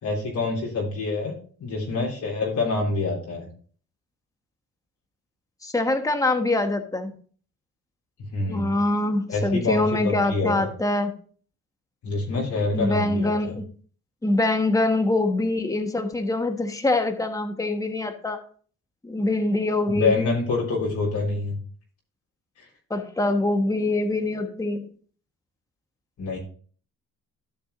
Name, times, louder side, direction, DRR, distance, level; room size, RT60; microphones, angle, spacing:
voice 1, 0.0-1.3 1.6-3.5 8.3-8.7 9.3-10.7 12.0-13.5 19.9-21.6 22.6-22.7 26.2-26.4, left 3 dB, 70° left, -3 dB, 3.7 m, -26 dB
voice 2, 5.6-7.1 8.5-11.1 12.7-13.6 14.2-18.4 19.0-20.2 22.9-24.8, left 2 dB, 10° left, 6 dB, 1.2 m, -24 dB
14.0 x 6.1 x 2.6 m, 0.43 s
cardioid pair, 90°, 30 cm